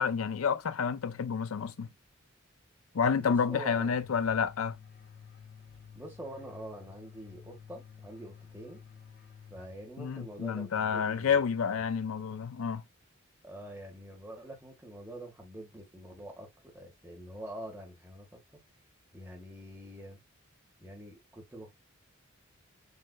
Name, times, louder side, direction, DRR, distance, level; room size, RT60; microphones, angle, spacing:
voice 1, 0.0-1.9 2.9-4.8 10.0-12.8, left 6 dB, 80° left, 0.5 m, -29 dB
voice 2, 3.2-4.0 5.9-8.8 9.5-11.4 11.7-11.8 13.4-18.4 19.1-20.2 20.8-21.7, right 1 dB, 10° right, 1.6 m, -45 dB
sound 1, 4.0-10.1, left 7 dB, 45° left, 1.3 m, -52 dB
6.6 x 3.1 x 2.3 m
head